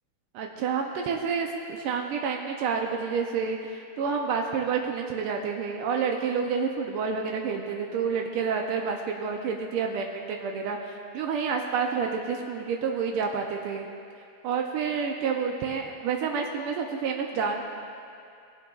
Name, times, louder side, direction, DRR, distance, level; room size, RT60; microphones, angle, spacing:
voice 1, 0.3-13.9 14.4-17.6, right 5 dB, 85° right, 2 dB, 1.6 m, -29 dB
19.5 x 7.7 x 2.4 m, 2.4 s
omnidirectional pair, 2.4 m